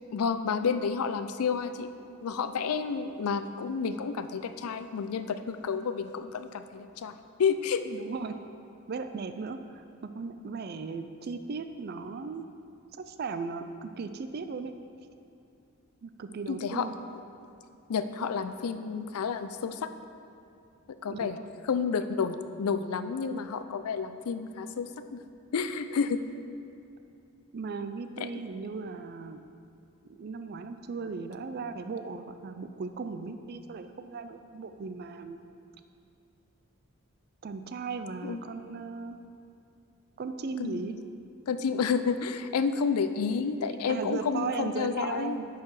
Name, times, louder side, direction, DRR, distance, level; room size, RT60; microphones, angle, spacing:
voice 1, 0.1-1.9 2.2-7.8 16.5-16.9 17.9-19.9 21.0-21.4 21.7-25.2 25.5-26.2 28.2-28.3 38.2-38.4 40.6-40.9 41.5-45.4, left 5 dB, 85° left, 10 dB, 0.4 m, -30 dB
voice 2, 7.9-8.4 8.9-12.5 12.9-14.7 16.0-16.9 21.1-21.5 27.5-29.4 30.1-35.4 37.4-39.2 40.2-41.0 43.9-45.5, right 4 dB, 45° right, 9 dB, 0.4 m, -37 dB
10.0 x 4.7 x 4.8 m, 2.5 s
head